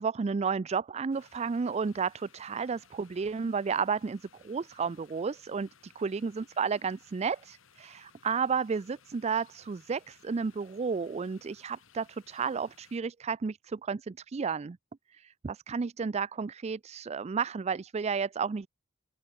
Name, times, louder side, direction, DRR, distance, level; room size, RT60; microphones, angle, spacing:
voice 1, 0.0-14.8 15.1-18.7, right 5 dB, 35° right, 0.4 m, -32 dB
sound 1, 1.1-13.0, left 7 dB, 80° left, 2.1 m, -62 dB
open air
head